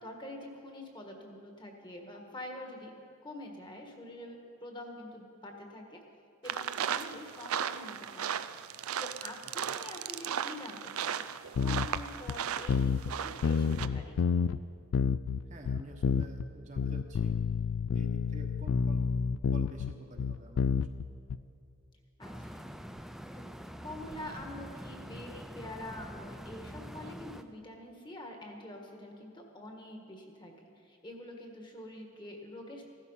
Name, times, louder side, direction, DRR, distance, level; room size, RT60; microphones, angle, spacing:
voice 1, 0.0-2.9 3.2-6.0 6.4-8.3 9.0-11.2 11.6-14.2 22.2-22.6 23.3-23.5 23.8-32.8, left 1 dB, 20° left, 2 dB, 1.6 m, -46 dB
sound 1, 6.4-13.9, right 8 dB, 75° right, 0.5 m, -36 dB
sound 2, 11.6-12.0 12.3-12.4 12.7-13.1 13.4-14.6 14.9-16.4 16.8-21.4, left 6 dB, 70° left, 0.3 m, -29 dB
voice 2, 15.5-17.4 17.9-19.1 19.5-21.1, right 1 dB, 35° right, 2 dB, 1.2 m, -49 dB
sound 3, 22.2-27.4, equal, ahead, 0.4 m, -45 dB
16.0 x 12.5 x 5.6 m, 2.5 s
head